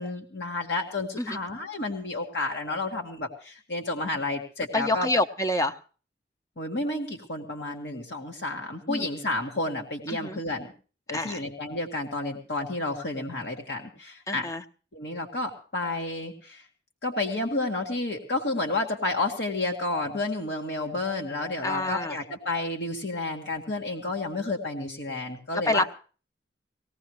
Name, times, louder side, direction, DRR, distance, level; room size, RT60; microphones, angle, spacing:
voice 1, 0.0-5.1 6.6-10.7 11.1-14.5 14.9-16.6 17.0-25.9, left 2 dB, 70° left, 2 dB, 1.8 m, -31 dB
voice 2, 4.7-5.8 8.9-9.1 10.1-10.4 11.1-11.4 14.3-14.6 21.6-22.2 25.7-25.9, left 2 dB, 20° left, 9 dB, 0.7 m, -27 dB
19.0 x 17.0 x 3.1 m, 0.37 s
head